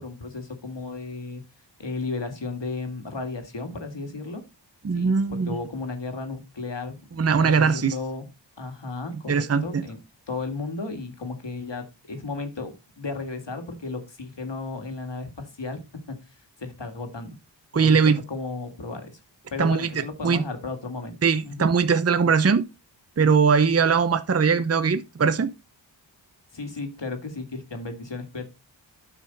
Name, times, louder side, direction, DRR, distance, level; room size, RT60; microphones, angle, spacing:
voice 1, 0.0-1.4 1.8-4.4 4.9-8.3 8.6-10.0 10.3-16.2 16.6-17.4 17.7-18.0 18.3-19.2 19.5-21.2 21.4-21.7 26.5-28.5, left 3 dB, 70° left, 2.0 m, -34 dB
voice 2, 4.8-5.6 7.2-7.9 9.3-9.9 17.7-18.2 19.6-19.9 20.2-20.4 21.2-22.7 23.2-25.5, right 5 dB, 35° right, 0.7 m, -20 dB
9.3 x 5.8 x 4.0 m
wide cardioid pair, 50°, 45 cm